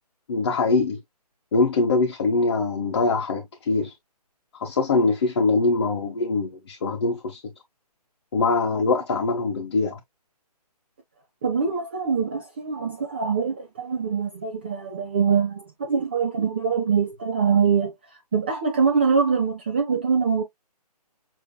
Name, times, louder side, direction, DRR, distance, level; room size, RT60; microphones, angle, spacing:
voice 1, 0.3-1.0 1.5-3.9 4.6-7.4 8.3-10.0, left 3 dB, 35° left, 1.0 m, -23 dB
voice 2, 11.4-20.4, right 6 dB, 15° right, 0.4 m, -24 dB
7.2 x 2.8 x 2.2 m
hypercardioid pair, 165°, 21 cm